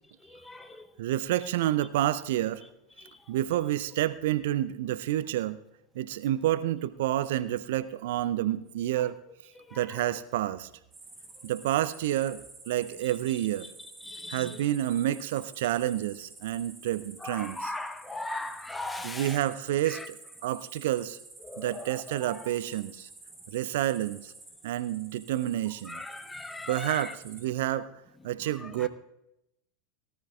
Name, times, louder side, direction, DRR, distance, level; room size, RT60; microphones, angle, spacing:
voice 1, 0.2-0.9 3.0-3.2 9.6-10.1 14.0-14.6 17.2-19.4 19.9-20.1 21.4-22.4 25.8-27.1 28.6-28.9, left 2 dB, 10° left, 0.9 m, -39 dB
voice 2, 1.0-2.6 3.3-5.6 6.0-9.2 9.7-10.7 11.4-12.4 12.7-13.7 14.3-17.7 19.0-20.2 20.4-21.2 21.6-23.1 23.5-24.3 24.6-26.0 26.7-27.9 28.2-28.9, right 13 dB, 60° right, 0.4 m, -29 dB
sound 1, 10.9-27.4, right 3 dB, 15° right, 4.6 m, -50 dB
18.0 x 12.5 x 2.3 m
figure-of-eight pair, 85°, 0 cm